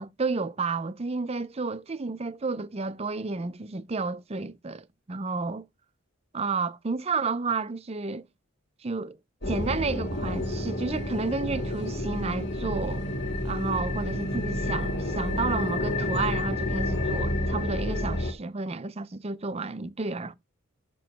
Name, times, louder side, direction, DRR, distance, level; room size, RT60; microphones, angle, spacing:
voice 1, 0.0-5.7 6.3-8.2 8.8-9.2 9.5-13.1 13.4-20.4, right 4 dB, 30° right, 0.5 m, -31 dB
sound 1, 9.4-18.3, left 1 dB, 55° left, 2.4 m, -29 dB
8.9 x 3.0 x 6.4 m
head